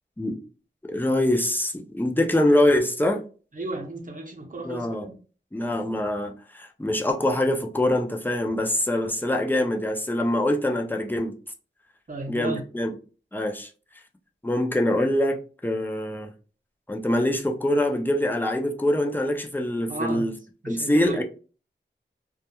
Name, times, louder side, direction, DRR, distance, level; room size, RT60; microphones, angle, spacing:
voice 1, 0.9-3.2 4.6-5.1 5.5-11.3 12.3-12.9 13.3-13.7 14.4-16.3 16.9-20.3 20.7-21.2, left 1 dB, 10° left, 0.5 m, -24 dB
voice 2, 3.5-5.1 12.1-12.6 19.9-20.3 20.6-21.2, right 2 dB, 40° right, 0.7 m, -33 dB
2.3 x 2.1 x 2.8 m
wide cardioid pair, 70°, 20 cm